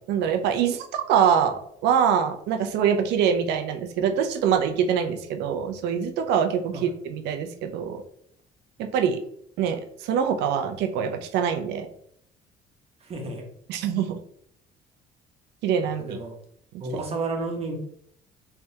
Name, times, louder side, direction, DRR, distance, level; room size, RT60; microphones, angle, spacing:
voice 1, 0.1-8.0 8.8-9.2 9.6-11.9 13.7-14.2 15.6-16.2, right 8 dB, 85° right, 6 dB, 0.6 m, -24 dB
voice 2, 13.0-13.4 15.8-16.4 16.8-17.7, right 3 dB, 35° right, 2 dB, 0.9 m, -32 dB
3.4 x 3.3 x 2.7 m, 0.68 s
cardioid pair, 110°, 17 cm